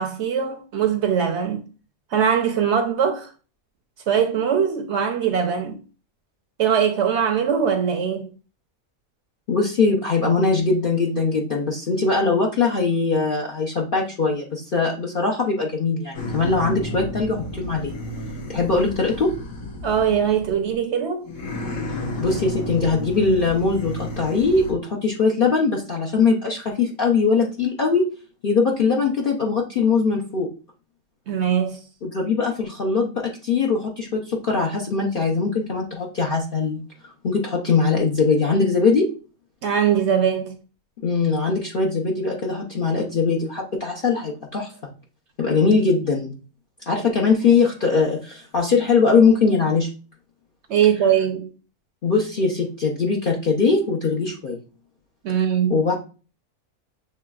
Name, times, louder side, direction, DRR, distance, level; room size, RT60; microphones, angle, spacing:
voice 1, 0.0-1.7 2.1-3.3 4.1-5.8 6.6-8.3 19.8-21.3 31.3-31.8 39.6-40.6 50.7-51.5 55.2-55.8, right 8 dB, 60° right, 0.8 m, -21 dB
voice 2, 9.5-17.9 18.5-19.3 22.2-28.1 28.4-30.5 32.0-39.1 41.0-44.8 45.4-46.4 46.9-49.9 52.0-54.6 55.7-55.9, left 4 dB, 50° left, 0.7 m, -21 dB
sound 1, 16.1-20.8 21.2-24.7, left 1 dB, 80° left, 1.6 m, -32 dB
6.7 x 3.1 x 2.3 m
omnidirectional pair, 1.5 m